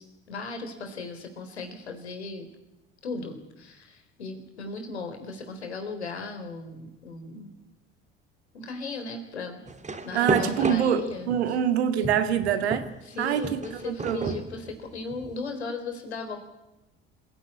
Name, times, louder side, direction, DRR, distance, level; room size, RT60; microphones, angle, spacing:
voice 1, 0.0-2.5 3.0-7.5 8.5-9.6 10.0-11.3 13.0-16.4, left 3 dB, 80° left, 6 dB, 4.0 m, -37 dB
sound 1, 9.7-11.5 12.0-15.3, right 3 dB, 20° right, 2.8 m, -32 dB
voice 2, 10.1-12.9 13.2-14.4, right 9 dB, 75° right, 10 dB, 2.0 m, -25 dB
27.0 x 16.0 x 9.8 m, 1.0 s
figure-of-eight pair, 60°, 32 cm